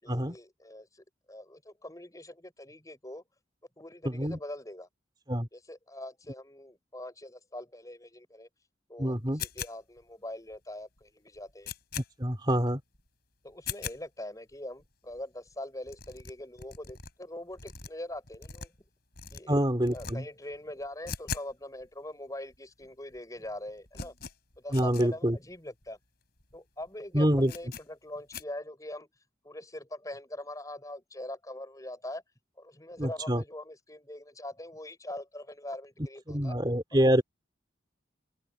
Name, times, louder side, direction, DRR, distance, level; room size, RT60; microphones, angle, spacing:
voice 1, 0.0-3.2 3.8-4.9 5.5-8.5 8.9-11.7 13.4-18.7 19.3-19.6 19.9-24.1 24.6-26.0 26.5-29.1 29.4-32.2 32.6-36.6 36.9-37.2, left 1 dB, 20° left, 6.6 m, -43 dB
voice 2, 4.0-4.4 5.3-5.5 9.0-9.4 12.2-12.8 19.5-20.2 24.7-25.4 27.1-27.5 33.0-33.4 36.3-37.2, equal, 25° right, 3.1 m, -26 dB
sound 1, 9.4-10.0 10.5-10.6 11.0-11.1 11.3-12.1 12.5-12.6 12.9-13.1 13.5-14.0 14.5-14.6 14.8-14.9 15.1-15.2 15.5-15.6 15.8-17.1 17.5-18.9 19.1-19.4 19.8-20.1 20.4-21.5 21.8-21.9 22.5-22.6 22.8-23.2 23.4-25.1 25.5-25.6 25.8-25.9 26.4-26.6 26.8-26.9 27.4-27.8 28.3-28.4, left 6 dB, 55° left, 8.0 m, -40 dB
head